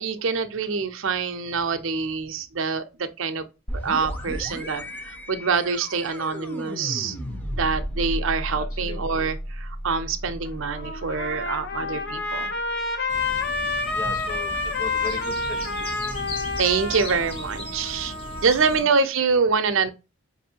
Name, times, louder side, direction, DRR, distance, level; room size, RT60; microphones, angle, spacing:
voice 1, 0.0-3.5 3.8-7.2 7.5-12.5 16.6-18.1 18.4-19.9, right 5 dB, 65° right, 0.6 m, -25 dB
sound 1, 3.7-13.2, equal, 10° left, 0.6 m, -34 dB
voice 2, 8.5-9.0 13.9-16.1 18.7-18.9, left 2 dB, 80° left, 1.2 m, -38 dB
Trumpet, 10.4-18.9, left 3 dB, 50° left, 0.7 m, -29 dB
sound 2, 13.1-18.8, equal, 25° left, 1.2 m, -36 dB
5.5 x 2.6 x 2.8 m
head